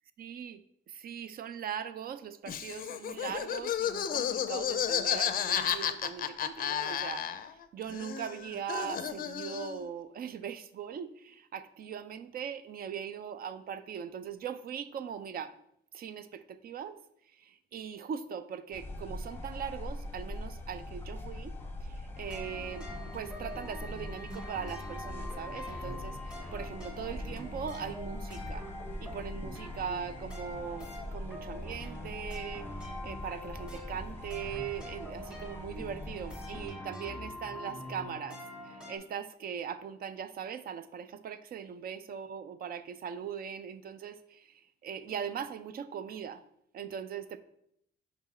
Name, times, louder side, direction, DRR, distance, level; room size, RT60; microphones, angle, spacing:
voice 1, 0.2-0.6 0.9-15.6 15.9-17.0 17.2-28.7 29.0-46.4 46.7-47.4, right 8 dB, 50° right, 13 dB, 0.4 m, -40 dB
Laughter, 2.5-7.6 7.9-9.8, left 9 dB, 50° left, 0.5 m, -32 dB
sound 1, 18.7-36.7, left 1 dB, 10° left, 0.8 m, -42 dB
sound 2, 22.1-39.0, left 1 dB, 5° right, 1.2 m, -44 dB
6.0 x 4.8 x 4.2 m, 0.74 s
cardioid pair, 145°, 20 cm